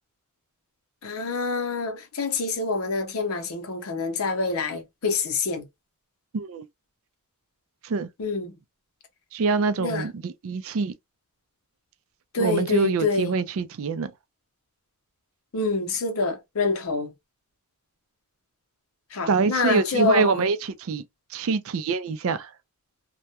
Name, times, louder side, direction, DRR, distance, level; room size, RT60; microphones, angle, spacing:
voice 1, 1.0-5.7 8.2-8.5 9.8-10.1 12.3-13.3 15.5-17.1 19.1-20.5, left 4 dB, 75° left, 0.7 m, -26 dB
voice 2, 6.3-6.7 7.8-8.1 9.3-10.9 12.4-14.1 19.3-21.0 21.3-22.5, right 4 dB, 70° right, 0.4 m, -25 dB
2.2 x 2.1 x 2.8 m
head